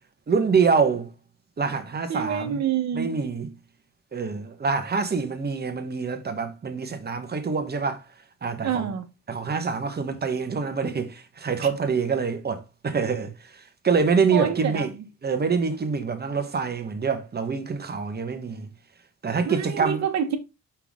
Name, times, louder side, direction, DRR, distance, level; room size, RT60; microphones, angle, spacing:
voice 1, 0.3-1.1 1.6-2.6 2.9-3.6 4.1-8.0 8.4-8.9 9.3-14.9 15.2-18.7 19.2-20.1, right 5 dB, 35° right, 1.4 m, -26 dB
voice 2, 2.1-3.2 8.6-9.1 14.3-14.9 19.5-20.4, right 8 dB, 65° right, 1.5 m, -27 dB
5.8 x 5.6 x 3.7 m
cardioid pair, 105°, 29 cm